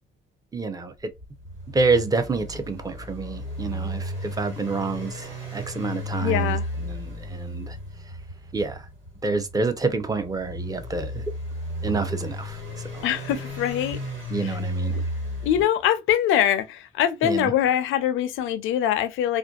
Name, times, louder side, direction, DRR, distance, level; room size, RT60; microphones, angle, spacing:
voice 1, 0.5-0.9 1.7-7.8 8.5-8.9 9.2-11.2 11.8-12.6 12.9-13.1 14.3-14.9 17.2-17.5, right 3 dB, 20° right, 0.5 m, -28 dB
sound 1, 1.2-15.6, equal, 80° right, 1.7 m, -33 dB
voice 2, 6.2-6.7 13.0-14.0 14.4-14.6 15.4-19.4, left 10 dB, 85° left, 0.4 m, -23 dB
2.5 x 2.2 x 2.3 m
cardioid pair, 90°, 20 cm